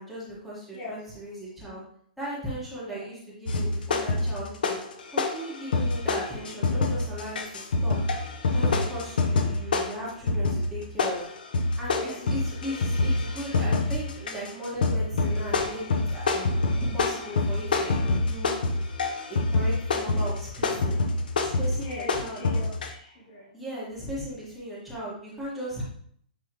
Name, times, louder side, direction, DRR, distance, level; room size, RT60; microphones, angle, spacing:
voice 1, 0.0-1.8 2.2-4.8 5.1-8.0 8.5-11.2 11.8-16.6 16.9-18.0 18.3-18.5 19.3-21.0 21.4-22.4 23.5-25.8, equal, ahead, -9 dB, 1.8 m, -37 dB
sound 1, 3.5-4.9 5.2-22.9, left 3 dB, 75° left, 1.0 m, -26 dB
voice 2, 21.8-23.5, left 2 dB, 35° left, -2 dB, 1.0 m, -39 dB
9.3 x 3.5 x 3.1 m, 0.63 s
hypercardioid pair, 175°, 5 cm